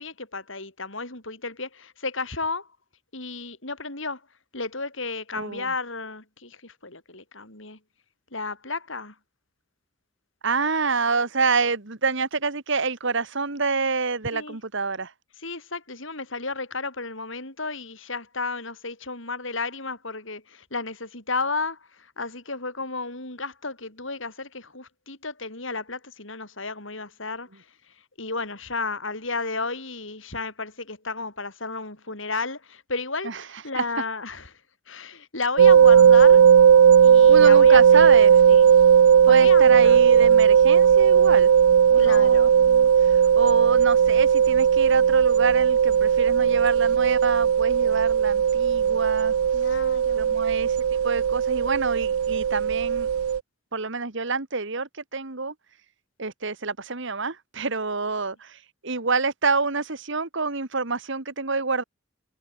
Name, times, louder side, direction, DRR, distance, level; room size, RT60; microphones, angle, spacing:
voice 1, 0.0-2.7 3.1-4.2 4.5-7.8 8.3-9.1 14.3-14.6 15.4-34.6 34.9-36.5 37.0-38.2 38.5-38.7 39.2-40.0 42.0-42.5 46.4-46.5 49.5-50.4, left 3 dB, 65° left, 6.7 m, -33 dB
voice 2, 5.3-5.7 10.4-15.1 33.2-33.4 33.8-33.9 37.3-38.4 39.3-41.5 41.9-49.4 50.1-50.8 51.0-53.1 53.7-55.5 56.2-61.8, right 4 dB, 60° right, 1.9 m, -27 dB
sound 1, 35.6-53.4, right 8 dB, 90° right, 0.4 m, -17 dB
head